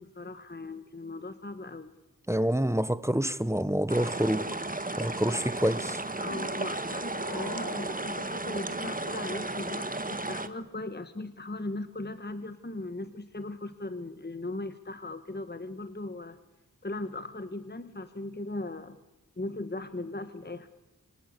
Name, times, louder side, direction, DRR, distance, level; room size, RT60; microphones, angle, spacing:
voice 1, 0.0-1.9 6.2-16.4 16.8-19.0 19.4-20.7, left 2 dB, 30° left, 1.5 m, -38 dB
voice 2, 2.3-4.5 5.0-6.0, equal, 10° right, 1.0 m, -27 dB
sound 1, 3.9-10.5, right 2 dB, 25° right, 1.7 m, -34 dB
sound 2, 6.5-9.5, left 1 dB, 65° left, 7.9 m, -44 dB
27.5 x 24.5 x 8.3 m
wide cardioid pair, 50°, 33 cm